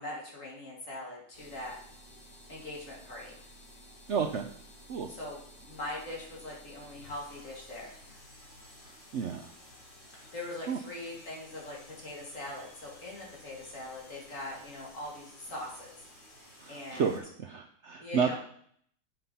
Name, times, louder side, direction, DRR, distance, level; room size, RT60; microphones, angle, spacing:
voice 1, 0.0-1.8 2.5-3.4 5.1-7.9 10.1-16.0 16.7-17.2 18.0-18.3, left 1 dB, 45° left, -3 dB, 2.8 m, -41 dB
sound 1, 1.3-17.2, left 1 dB, 65° left, 4.4 m, -54 dB
voice 2, 4.1-4.5 4.9-5.1 8.9-9.5 10.7-10.8 16.6-18.3, right 6 dB, 85° right, 6 dB, 0.6 m, -31 dB
8.1 x 5.9 x 5.5 m, 0.64 s
omnidirectional pair, 2.0 m